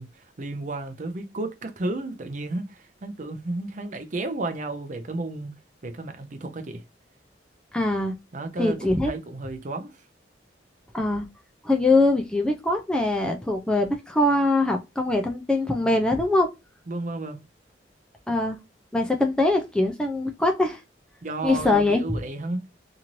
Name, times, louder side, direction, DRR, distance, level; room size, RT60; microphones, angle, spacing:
voice 1, 0.0-6.8 8.3-10.0 16.9-17.4 21.2-22.6, right 2 dB, 45° right, 0.6 m, -33 dB
voice 2, 7.7-8.1 8.6-9.1 10.9-11.3 11.6-16.5 18.3-18.6 18.9-20.8 21.4-22.0, left 2 dB, 5° left, 0.4 m, -22 dB
3.0 x 2.6 x 2.5 m
head